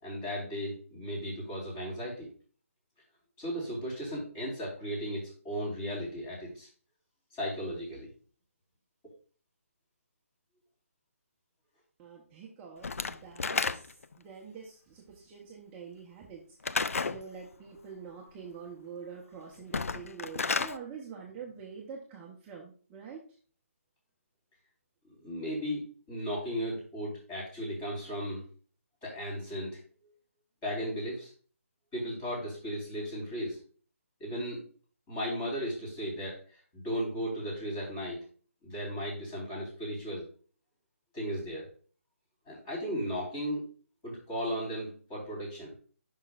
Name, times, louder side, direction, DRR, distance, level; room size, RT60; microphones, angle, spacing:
voice 1, 0.0-2.3 3.4-6.7 7.3-8.1 25.2-28.4 29.0-29.8 30.6-31.3 31.9-33.6 34.2-34.6 35.1-38.2 38.6-40.3 41.1-41.7 42.5-43.7 44.0-45.7, equal, 20° left, -4 dB, 4.1 m, -36 dB
voice 2, 12.0-23.4, right 6 dB, 20° right, -2 dB, 1.0 m, -46 dB
Slam / Wood, 12.8-14.1 16.6-17.2 19.6-20.8, left 4 dB, 70° left, 0.4 m, -31 dB
9.7 x 5.7 x 2.5 m, 0.42 s
figure-of-eight pair, 150°, 8 cm